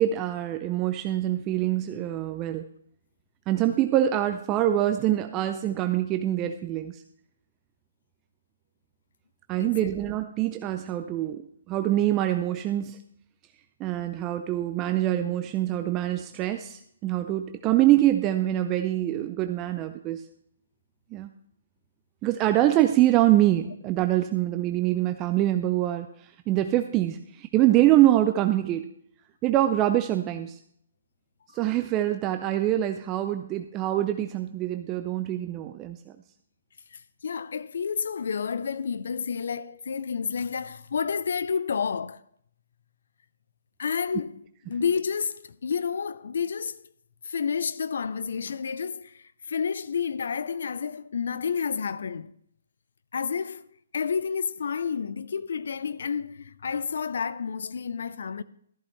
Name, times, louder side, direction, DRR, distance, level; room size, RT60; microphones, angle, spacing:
voice 1, 0.0-2.6 3.5-7.0 9.5-13.0 13.8-20.2 21.1-21.3 22.2-28.9 29.4-30.6 31.5-36.0, right 13 dB, 25° right, 0.5 m, -24 dB
voice 2, 36.9-42.2 43.8-44.3 44.7-46.8 47.2-52.3 53.1-53.7 53.9-58.4, left 6 dB, 65° left, 0.5 m, -30 dB
13.5 x 11.5 x 3.1 m
figure-of-eight pair, 135°, 0 cm